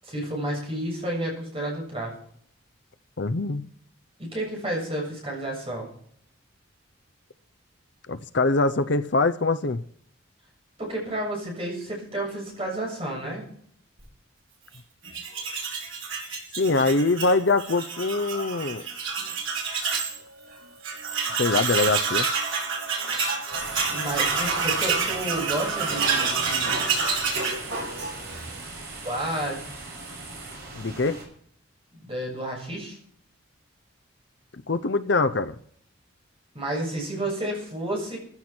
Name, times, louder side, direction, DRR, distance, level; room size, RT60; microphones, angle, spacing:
voice 1, 0.0-2.1 4.2-5.9 10.8-13.4 23.9-26.8 29.0-29.6 31.9-33.0 36.5-38.2, right 1 dB, 25° right, -1 dB, 7.3 m, -31 dB
voice 2, 3.2-3.6 8.1-9.8 16.6-18.8 21.4-22.3 30.8-31.2 34.5-35.6, left 3 dB, 55° left, 12 dB, 0.7 m, -23 dB
Tools, 15.0-20.2 20.5-20.6 20.8-28.4, right 5 dB, 70° right, 5.8 m, -28 dB
sound 1, 23.5-31.2, right 3 dB, 50° right, 7.0 m, -40 dB
15.5 x 14.5 x 4.5 m, 0.62 s
head